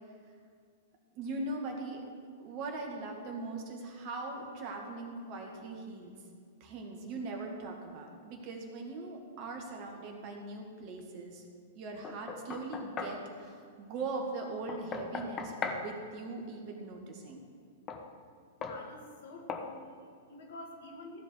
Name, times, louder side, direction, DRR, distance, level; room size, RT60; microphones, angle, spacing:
voice 1, 1.2-2.0 2.4-6.1 6.6-11.4 11.8-17.4, right 3 dB, 45° right, 2 dB, 2.1 m, -40 dB
Knock, 12.0-13.2 14.7-15.9 17.9-18.0 18.6-18.8 19.5-19.7, left 5 dB, 25° left, 1.2 m, -38 dB
voice 2, 18.6-21.2, left 2 dB, 65° left, 1 dB, 2.2 m, -48 dB
15.0 x 5.1 x 8.2 m, 2.1 s
figure-of-eight pair, 105°, 0 cm